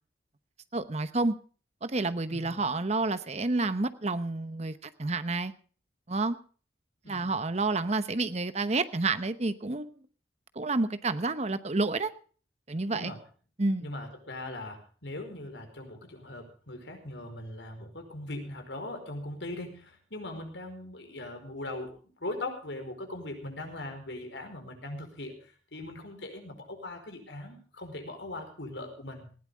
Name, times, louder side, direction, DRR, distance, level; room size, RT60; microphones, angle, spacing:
voice 1, 0.7-1.3 1.8-5.5 6.1-6.4 7.1-9.9 10.6-12.1 12.7-13.1 13.6-13.9, right 3 dB, 40° right, 12 dB, 0.9 m, -29 dB
voice 2, 2.3-2.6 7.0-7.3 12.9-13.2 13.8-21.9 22.2-29.3, left 2 dB, 80° left, 5 dB, 4.8 m, -40 dB
19.5 x 16.0 x 3.5 m, 0.41 s
head